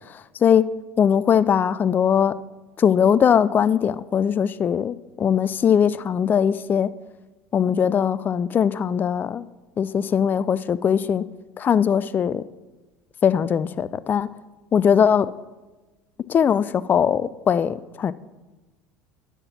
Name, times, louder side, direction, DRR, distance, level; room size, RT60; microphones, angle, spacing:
voice 1, 1.0-2.3 2.8-6.9 7.5-9.4 9.8-11.2 11.6-12.4 13.2-14.3 14.7-15.3 16.3-18.1, left 8 dB, 30° left, 17 dB, 0.3 m, -20 dB
10.0 x 5.8 x 5.9 m, 1.2 s
hypercardioid pair, 75°, 6 cm